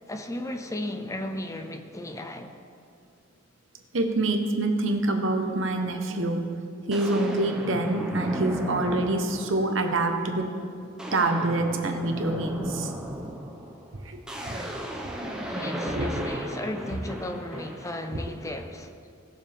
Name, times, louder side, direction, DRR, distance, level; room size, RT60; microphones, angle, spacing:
voice 1, 0.1-2.5 15.5-19.1, left 1 dB, 15° left, 0.6 m, -35 dB
voice 2, 3.9-6.5 6.9-10.7 11.1-12.9 14.0-14.2 14.5-14.7 15.1-15.5 15.9-16.3, right 2 dB, 75° right, 1.1 m, -26 dB
sound 1, 6.1-6.2 6.9-9.8 10.2-10.5 10.8-17.9, equal, 5° right, 1.2 m, -35 dB
19.5 x 7.1 x 3.5 m
head